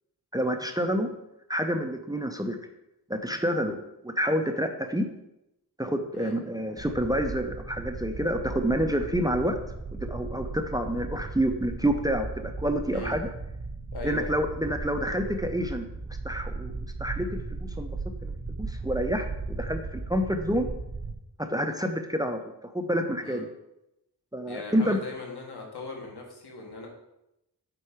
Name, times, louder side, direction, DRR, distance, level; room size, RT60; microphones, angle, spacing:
voice 1, 0.3-1.1 1.5-2.6 3.1-3.8 4.0-5.1 5.8-9.6 10.0-13.3 14.0-15.8 16.2-17.9 18.2-18.3 18.6-20.7 21.4-23.5 24.3-25.0, equal, 10° right, 6 dB, 0.6 m, -28 dB
sound 1, 6.8-21.1, right 3 dB, 70° right, 2.8 m, -36 dB
voice 2, 13.9-14.3 23.2-23.4 24.5-26.9, left 2 dB, 80° left, 0 dB, 1.8 m, -39 dB
7.8 x 4.6 x 4.6 m, 0.88 s
wide cardioid pair, 85°, 39 cm